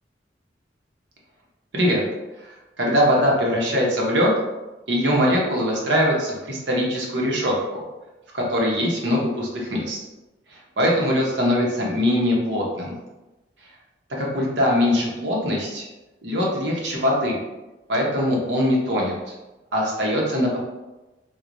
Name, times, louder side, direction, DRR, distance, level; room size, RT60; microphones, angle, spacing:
voice 1, 2.4-4.3 4.9-7.8 8.3-10.0 10.5-12.9 14.1-15.9 16.2-17.4 17.9-19.3 19.7-20.6, equal, 80° right, -3 dB, 0.9 m, -22 dB
4.5 x 2.3 x 2.5 m, 1.1 s
head